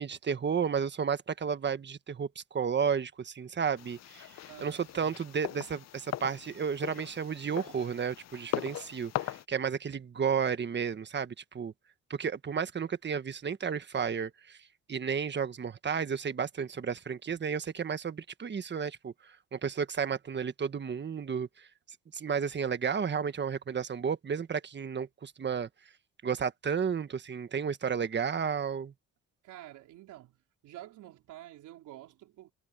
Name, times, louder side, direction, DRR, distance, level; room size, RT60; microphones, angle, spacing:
voice 1, 0.0-4.3 4.6-11.7 12.1-14.6 14.9-21.7 22.1-25.7 26.2-28.9, right 6 dB, 35° right, 1.4 m, -32 dB
sound 1, 3.8-9.4, left 12 dB, 60° left, 0.7 m, -40 dB
voice 2, 4.5-5.2 29.4-30.3 30.6-32.5, right 14 dB, 90° right, 4.2 m, -49 dB
cardioid pair, 90°, 30 cm